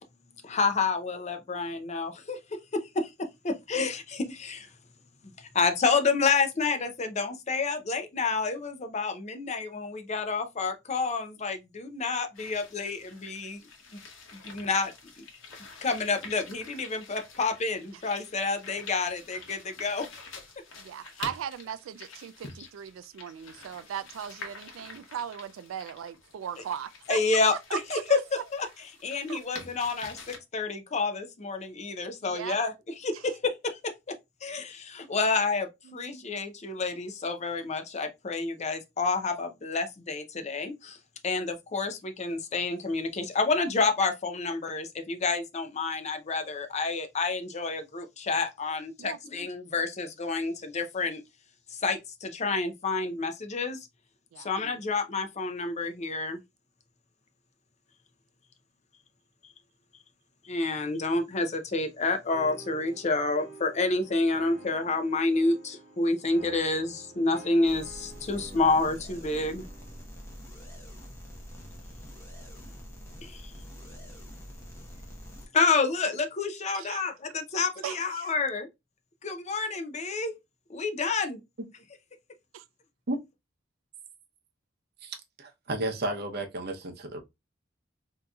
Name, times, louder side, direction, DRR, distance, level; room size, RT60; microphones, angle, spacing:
voice 1, 0.4-2.4 2.7-3.1 3.4-4.7 5.4-13.6 14.3-15.2 15.8-20.0 27.1-28.2 28.5-28.7 29.0-32.7 33.0-33.9 34.4-41.0 41.2-51.2 51.7-53.8 54.4-56.4 60.4-69.6 73.2-73.5 75.5-78.7 79.2-80.3 80.7-81.4, left 3 dB, 35° left, 0.5 m, -29 dB
sound 1, 12.3-30.4, left 4 dB, 85° left, 0.9 m, -47 dB
voice 2, 20.8-27.2 27.7-28.2 29.3-29.4 32.2-32.6 33.1-33.2 35.9-36.0 49.0-49.2 54.3-54.5 76.7-77.0 77.8-78.3 82.5-82.6, right 9 dB, 90° right, 0.3 m, -38 dB
sound 2, 62.3-70.1, right 3 dB, 40° right, 1.0 m, -49 dB
sound 3, 67.6-75.5, equal, 15° left, 1.0 m, -45 dB
voice 3, 85.0-87.2, right 1 dB, 55° right, 0.7 m, -33 dB
3.8 x 2.7 x 2.2 m
head